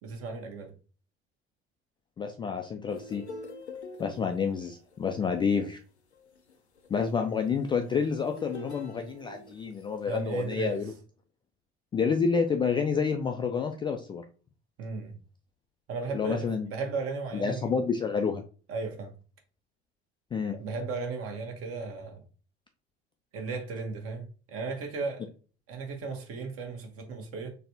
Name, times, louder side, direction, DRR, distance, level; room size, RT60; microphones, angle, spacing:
voice 1, 0.0-0.7 10.1-10.8 14.8-15.1 15.9-17.7 18.7-19.1 20.5-22.2 23.3-25.2 25.7-27.6, right 4 dB, 45° right, 1.2 m, -35 dB
voice 2, 2.2-3.2 4.0-5.8 6.9-10.9 11.9-14.2 16.1-16.7 17.3-18.4 20.3-20.6, left 6 dB, 15° left, 0.3 m, -29 dB
sound 1, 2.9-10.1 10.8-11.0, left 2 dB, 85° left, 0.5 m, -46 dB
4.0 x 3.3 x 2.8 m
figure-of-eight pair, 65°, 33 cm